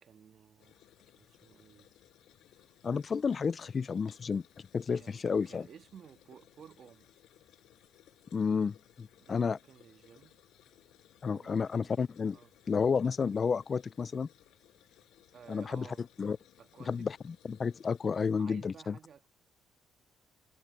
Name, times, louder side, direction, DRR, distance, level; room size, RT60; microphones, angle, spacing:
voice 1, 0.0-0.8 1.2-1.9 2.5-2.8 4.9-7.1 9.2-10.4 11.3-12.5 15.3-16.0 16.6-17.1 18.4-19.3, right 8 dB, 55° right, 1.7 m, -55 dB
sound 1, 0.6-18.4, left 13 dB, 85° left, 7.8 m, -63 dB
voice 2, 2.8-4.4 4.7-5.7 8.3-9.6 11.2-12.4 12.7-14.3 15.5-15.9 16.2-16.4 16.9-19.0, left 5 dB, 40° left, 0.3 m, -31 dB
cardioid pair, 90°, 0 cm